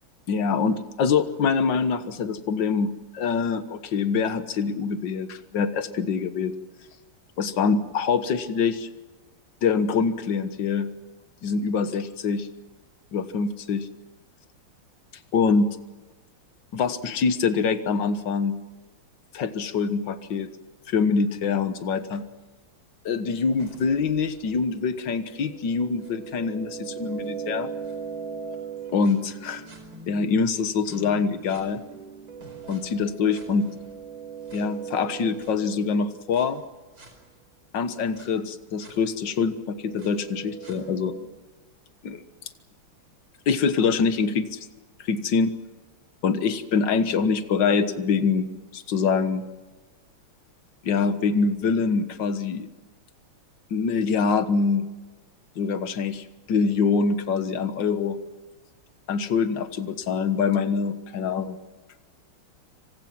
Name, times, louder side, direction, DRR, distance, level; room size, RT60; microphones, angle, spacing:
voice 1, 0.3-6.6 7.4-8.9 9.6-10.9 11.4-12.5 13.1-13.9 15.3-15.7 16.7-18.6 19.3-20.5 20.9-22.2 23.1-27.7 28.9-29.6 30.1-31.8 32.7-33.7 34.5-36.6 37.7-41.1 42.0-42.2 43.5-44.6 45.0-45.5 46.2-48.5 48.7-49.4 50.8-52.7 53.7-54.9 55.6-58.2 59.1-61.6, left 5 dB, 60° left, 10 dB, 2.0 m, -24 dB
sound 1, 23.4-30.3 30.8-36.5 37.0-37.1 38.2-38.3 38.8-38.9 39.4-41.2, right 6 dB, 70° right, 5.8 m, -40 dB
27.5 x 25.5 x 6.0 m, 1.2 s
omnidirectional pair, 2.4 m